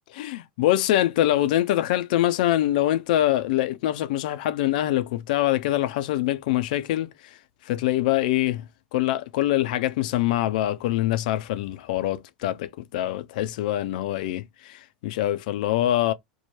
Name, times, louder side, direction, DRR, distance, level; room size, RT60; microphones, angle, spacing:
voice 1, 0.1-7.4 7.7-8.6 8.9-16.1, left 14 dB, 65° left, 0.4 m, -24 dB
2.8 x 2.2 x 3.0 m
hypercardioid pair, 85°, 5 cm